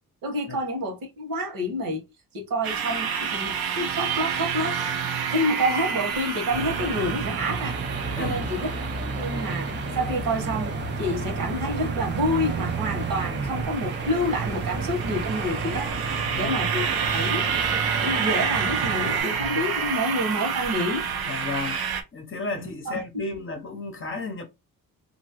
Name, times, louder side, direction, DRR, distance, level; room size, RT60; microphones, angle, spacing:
voice 1, 0.2-2.0 2.3-4.8 5.3-7.8 8.2-8.7 9.2-9.7 9.9-15.9 16.4-16.9 17.1-17.5 18.0-21.0 22.6-23.0, equal, 65° right, 1.3 m, -28 dB
sound 1, 2.6-22.0, right 7 dB, 85° right, 0.7 m, -30 dB
sound 2, 6.5-19.2, right 4 dB, 30° right, 0.5 m, -31 dB
voice 2, 8.2-8.5 16.1-16.6 21.3-21.8 22.1-24.4, left 3 dB, 35° left, 0.7 m, -33 dB
2.8 x 2.6 x 2.9 m
cardioid pair, 125°, 36 cm